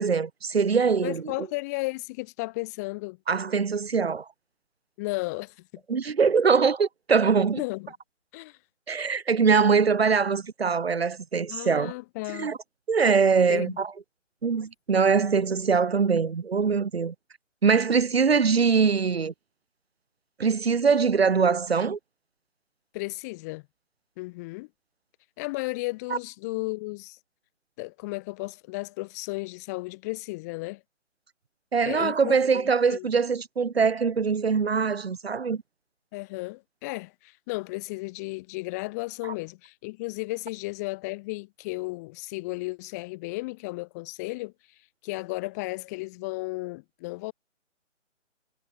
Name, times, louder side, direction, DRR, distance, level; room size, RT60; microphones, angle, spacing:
voice 1, 0.0-1.2 3.3-4.3 5.9-7.6 8.9-11.9 12.4-12.6 12.9-13.9 14.4-17.1 17.6-19.3 20.4-22.0 26.1-26.2 31.7-35.6, right 5 dB, 50° right, 7.0 m, -23 dB
voice 2, 1.0-3.2 5.0-5.5 7.5-7.9 8.3-8.6 11.5-12.5 13.5-13.8 22.9-23.6 24.2-24.7 25.4-27.2 27.8-30.8 31.8-33.1 36.1-47.3, left 24 dB, 15° left, 3.2 m, -34 dB
hypercardioid pair, 170°, 38 cm